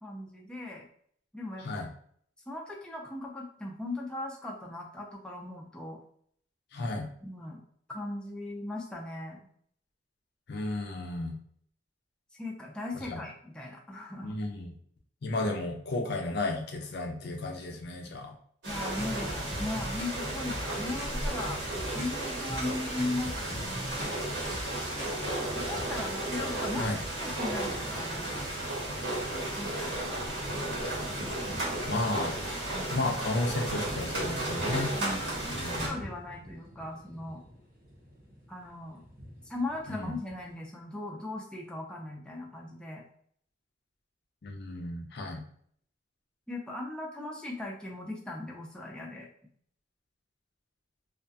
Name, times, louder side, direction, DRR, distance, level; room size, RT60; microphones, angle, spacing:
voice 1, 0.0-0.9 1.3-1.8 2.5-6.0 7.2-7.6 7.9-9.4 12.3-14.4 18.6-21.6 21.9-24.3 25.0-26.9 27.2-28.3 29.6-30.2 32.7-33.1 34.9-35.5 35.8-37.4 38.5-39.0 39.4-43.0 46.5-49.3, left 2 dB, 5° left, -2 dB, 0.3 m, -38 dB
voice 2, 6.7-7.1 10.5-11.4 13.1-13.2 14.2-14.7 15.2-18.3 26.8-27.0 31.9-32.3 32.9-34.9 35.5-35.9 40.0-40.2 44.4-45.4, left 2 dB, 65° left, 3 dB, 0.5 m, -33 dB
sound 1, 18.6-35.9, right 1 dB, 90° right, 1.0 m, -34 dB
sound 2, 18.7-25.8, equal, 15° right, 0.7 m, -41 dB
sound 3, 25.6-40.6, equal, 55° right, 0.7 m, -46 dB
2.3 x 2.2 x 2.6 m, 0.62 s
head